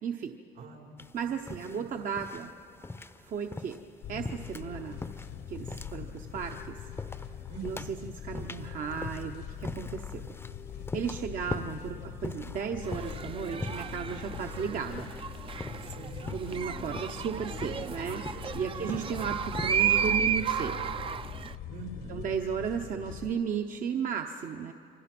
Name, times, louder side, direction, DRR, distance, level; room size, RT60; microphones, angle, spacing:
voice 1, 0.0-0.3 1.1-2.5 3.2-3.8 4.1-5.0 5.5-6.8 7.6-10.2 10.9-15.1 16.3-18.2 18.5-20.9 22.1-24.7, right 7 dB, 55° right, 4 dB, 1.0 m, -34 dB
voice 2, 0.5-1.0 1.7-1.9 7.5-8.0 15.9-16.5 18.7-19.2 21.7-22.3, right 3 dB, 80° right, 1 dB, 4.4 m, -45 dB
sound 1, 1.0-19.9, left 3 dB, 15° left, 0.7 m, -43 dB
sound 2, 4.0-23.3, left 9 dB, 70° left, 1.2 m, -42 dB
sound 3, 12.8-21.5, right 8 dB, 30° right, 0.5 m, -33 dB
28.5 x 24.0 x 6.1 m, 2.7 s
cardioid pair, 110°, 17 cm